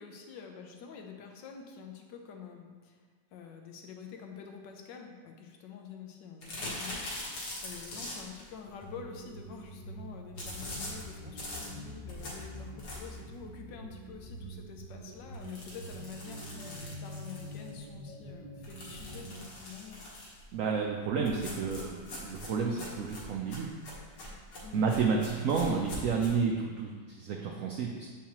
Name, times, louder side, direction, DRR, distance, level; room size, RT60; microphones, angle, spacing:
voice 1, 0.0-3.0 3.3-20.2 24.6-24.9, left 6 dB, 80° left, 3 dB, 1.4 m, -47 dB
sound 1, 6.4-8.5 10.4-13.3 13.7-13.8 14.2-14.3 14.6-14.7 15.3-17.8 18.6-20.4 21.2-26.3, left 1 dB, 65° left, 1.8 m, -43 dB
sound 2, 8.7-19.4, right 1 dB, 45° right, 1.3 m, -46 dB
voice 2, 20.5-23.7 24.7-28.1, right 5 dB, 75° right, 0 dB, 0.7 m, -31 dB
7.1 x 4.6 x 3.0 m, 1.5 s
omnidirectional pair, 1.9 m